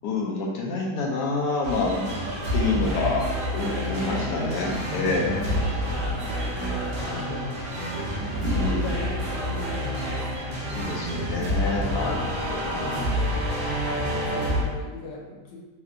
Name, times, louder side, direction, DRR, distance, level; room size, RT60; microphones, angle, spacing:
voice 1, 0.0-2.2 2.5-5.3 8.4-8.9 10.7-12.2 12.5-13.1, left 3 dB, 70° left, -2 dB, 1.1 m, -28 dB
sound 1, 1.6-14.6, equal, 65° right, 0.8 m, -28 dB
voice 2, 2.7-3.2 3.9-7.7 8.3-10.9 11.7-12.3 12.8-13.2 13.8-15.6, left 3 dB, 90° left, -3 dB, 0.6 m, -38 dB
3.3 x 2.8 x 2.4 m, 1.2 s
omnidirectional pair, 2.0 m